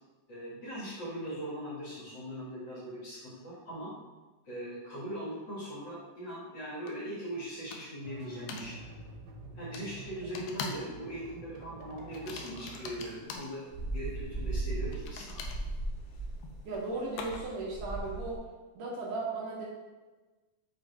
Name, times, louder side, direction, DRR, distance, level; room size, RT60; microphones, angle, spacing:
voice 1, 0.3-3.9 4.5-8.9 9.5-15.4, equal, 45° left, -8 dB, 1.6 m, -40 dB
sound 1, 6.9-7.0 7.7-8.1 8.5-8.7 9.7-9.9 10.3-10.9 11.2-11.5 12.1-13.5 14.9-17.7, left 4 dB, 80° left, 2.2 m, -43 dB
sound 2, 8.0-13.2, right 3 dB, 85° right, 2.8 m, -47 dB
sound 3, 13.2-18.4, right 2 dB, 25° left, 1.1 m, -37 dB
voice 2, 16.7-18.4 18.7-19.7, right 3 dB, 70° right, -4 dB, 2.3 m, -36 dB
6.6 x 3.1 x 4.6 m, 1.2 s
omnidirectional pair, 4.3 m